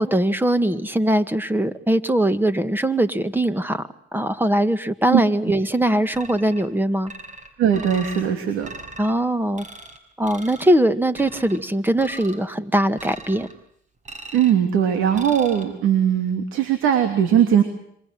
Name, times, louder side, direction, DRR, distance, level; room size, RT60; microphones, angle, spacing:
voice 1, 0.0-3.8 4.1-7.1 9.0-9.7 10.2-13.5, right 1 dB, 10° right, 11 dB, 1.9 m, -21 dB
sound 1, 6.1-6.7 7.1-8.3 8.6-9.1 9.6-10.0 10.2-10.8 11.1-11.6 12.0-12.4 13.0-13.5 14.1-14.6 15.1-15.6, right 2 dB, 40° right, 6.2 m, -40 dB
voice 2, 7.6-8.7 14.3-17.6, right 9 dB, 90° right, 8 dB, 3.1 m, -19 dB
27.0 x 25.0 x 7.8 m, 0.70 s
cardioid pair, 90°, 20 cm